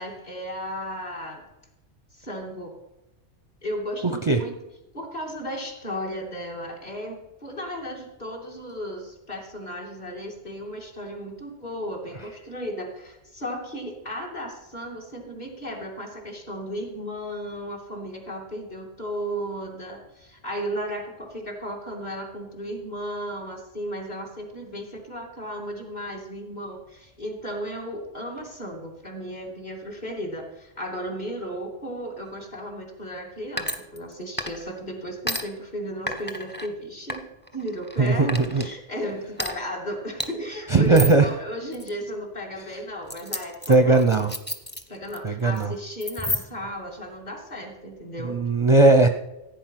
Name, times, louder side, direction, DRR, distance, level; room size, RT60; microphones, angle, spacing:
voice 1, 0.0-1.4 2.1-2.7 3.6-4.6 4.9-37.2 37.5-44.0 44.9-48.4, equal, 40° left, -1 dB, 2.9 m, -35 dB
sound 1, 33.6-34.1 34.4-34.8 35.3-35.4 36.1-36.7 37.1-38.0 38.3-38.7 39.4-39.5 40.2-40.3 40.9-41.2 41.7-41.9 43.1-45.2 45.5-45.7 46.0-46.7, equal, 10° left, 1.0 m, -31 dB
voice 2, 38.0-38.6 40.7-41.3 43.7-44.3 45.2-45.7 48.2-49.1, right 3 dB, 30° right, 6 dB, 0.7 m, -18 dB
15.5 x 9.1 x 5.9 m, 0.93 s
omnidirectional pair, 1.2 m